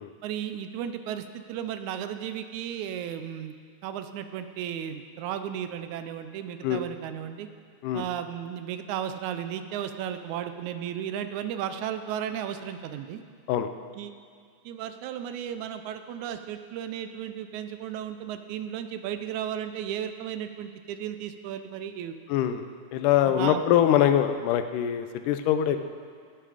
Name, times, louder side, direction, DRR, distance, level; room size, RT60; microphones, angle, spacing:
voice 1, 0.2-3.5 3.8-7.5 7.9-13.2 14.0-14.1 14.7-22.2 23.3-23.6, right 9 dB, 80° right, 9 dB, 1.9 m, -34 dB
voice 2, 22.3-22.6 22.9-25.8, left 10 dB, 85° left, 9 dB, 2.2 m, -23 dB
17.0 x 9.1 x 5.0 m, 2.1 s
omnidirectional pair, 3.6 m